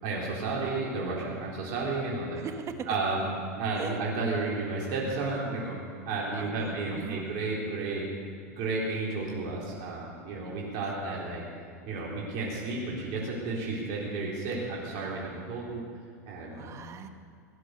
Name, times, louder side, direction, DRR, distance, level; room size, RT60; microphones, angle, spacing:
voice 1, 0.0-2.4 2.9-3.2 3.5-5.8 6.1-8.1 8.6-11.4 11.9-15.8 16.3-16.8, right 3 dB, 55° right, -4 dB, 3.8 m, -32 dB
voice 2, 2.3-2.9 3.7-4.0 6.3-7.3 10.8-10.9 16.5-17.1, right 7 dB, 35° right, 8 dB, 1.4 m, -41 dB
18.0 x 11.0 x 6.6 m, 2.1 s
hypercardioid pair, 105°, 9 cm